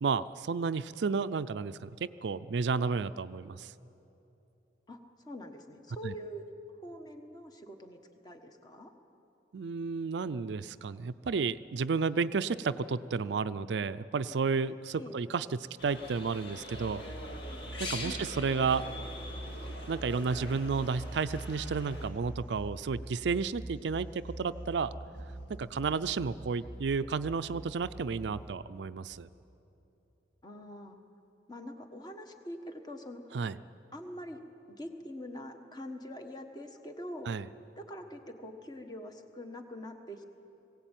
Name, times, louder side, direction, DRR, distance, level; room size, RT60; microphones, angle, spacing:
voice 1, 0.0-3.7 6.0-6.1 9.5-17.0 17.8-18.8 19.9-24.9 25.6-29.3 33.3-33.6 37.3-37.5, right 5 dB, 70° right, 14 dB, 0.4 m, -32 dB
voice 2, 4.9-6.5 6.8-8.0 8.2-8.9 15.0-15.1 18.0-18.3 30.4-31.0 31.5-33.2 33.9-34.4 34.7-37.3 37.8-40.2, equal, 20° left, 5 dB, 1.4 m, -44 dB
sound 1, 15.8-22.1, left 2 dB, 65° left, 2.3 m, -43 dB
sound 2, 16.7-28.5, right 1 dB, 80° left, 3.3 m, -44 dB
20.5 x 16.5 x 9.1 m, 2.9 s
head